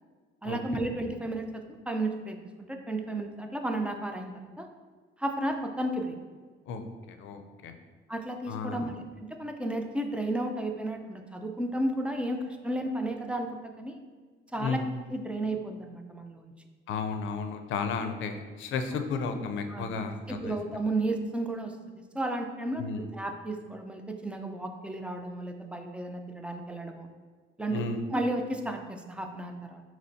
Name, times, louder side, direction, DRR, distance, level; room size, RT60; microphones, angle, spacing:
voice 1, 0.4-4.7 5.2-6.2 8.1-8.9 9.2-14.0 14.5-14.8 15.1-16.5 19.7-19.9 20.3-21.7 22.1-22.8 23.1-27.1 27.6-27.8 28.1-29.8, right 1 dB, 5° right, 4 dB, 0.4 m, -33 dB
voice 2, 6.7-7.7 8.5-8.9 14.6-14.9 16.9-20.6 22.7-23.1 27.7-28.0, left 5 dB, 75° left, 7 dB, 0.5 m, -33 dB
5.5 x 3.0 x 2.7 m, 1.5 s
cardioid pair, 90°, 20 cm